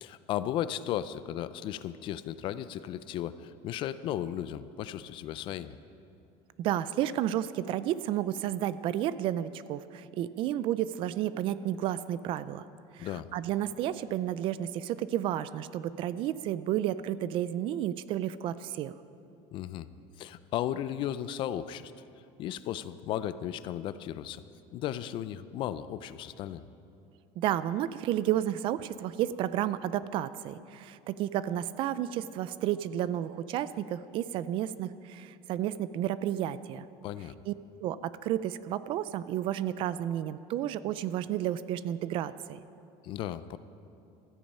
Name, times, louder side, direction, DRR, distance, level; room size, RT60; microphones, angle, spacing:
voice 1, 0.0-5.8 13.0-13.3 19.5-19.9 20.2-21.9 22.4-24.4 24.7-26.7 37.0-37.3 43.0-43.6, left 11 dB, 40° left, 14 dB, 0.4 m, -35 dB
voice 2, 6.6-12.7 12.9-18.9 27.4-36.8 37.5-37.6 37.8-42.6, right 12 dB, 40° right, 15 dB, 0.4 m, -31 dB
16.0 x 13.5 x 5.5 m, 2.7 s
cardioid pair, 175°, 13 cm